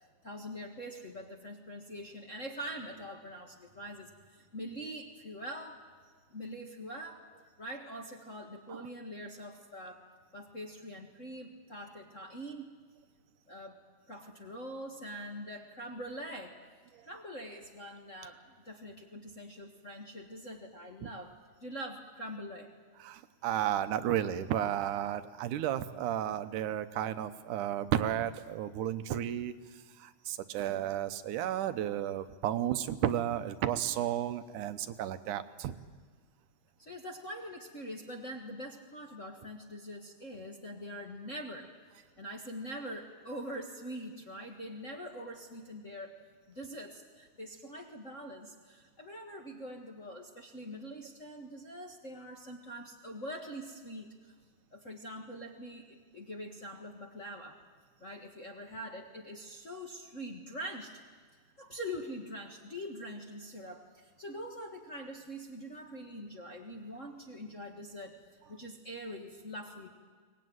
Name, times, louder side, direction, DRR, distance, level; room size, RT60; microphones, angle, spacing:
voice 1, 0.2-5.8 6.3-7.2 7.6-10.0 10.3-12.7 13.5-13.8 14.1-16.6 17.0-22.7 36.8-41.7 42.2-46.2 46.5-54.3 54.7-57.6 58.0-61.0 61.6-68.2 68.5-69.9, equal, 35° left, 1 dB, 1.3 m, -44 dB
voice 2, 23.0-29.5 30.0-35.7, right 11 dB, 80° right, 11 dB, 2.3 m, -33 dB
23.0 x 19.5 x 9.5 m, 1.5 s
omnidirectional pair, 3.6 m